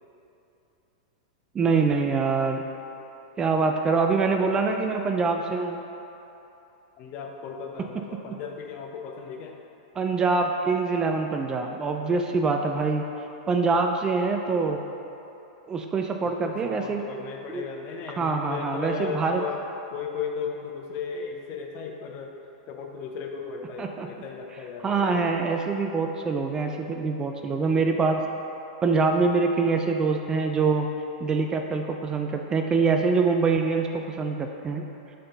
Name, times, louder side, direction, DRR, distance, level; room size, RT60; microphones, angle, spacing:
voice 1, 1.5-2.6 3.4-5.8 10.0-13.0 13.5-14.8 15.7-17.0 17.5-17.7 18.2-19.4 23.8-24.1 24.8-28.2 28.8-30.9 31.2-34.8, right 4 dB, 20° right, 4 dB, 0.4 m, -24 dB
voice 2, 7.0-9.6 16.2-22.4 22.7-25.3, left 6 dB, 45° left, 2 dB, 0.7 m, -36 dB
6.6 x 3.8 x 3.9 m, 2.9 s
hypercardioid pair, 105°, 3 cm